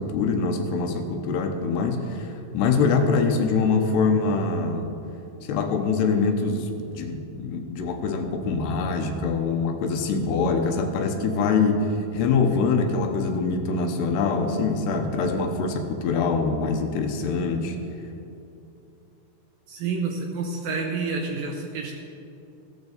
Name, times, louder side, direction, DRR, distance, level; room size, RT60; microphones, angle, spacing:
voice 1, 0.0-4.9 5.5-17.8, left 4 dB, 80° left, 5 dB, 3.0 m, -24 dB
voice 2, 19.7-21.9, right 4 dB, 70° right, 2 dB, 2.3 m, -29 dB
15.0 x 14.0 x 4.1 m, 2.8 s
omnidirectional pair, 4.9 m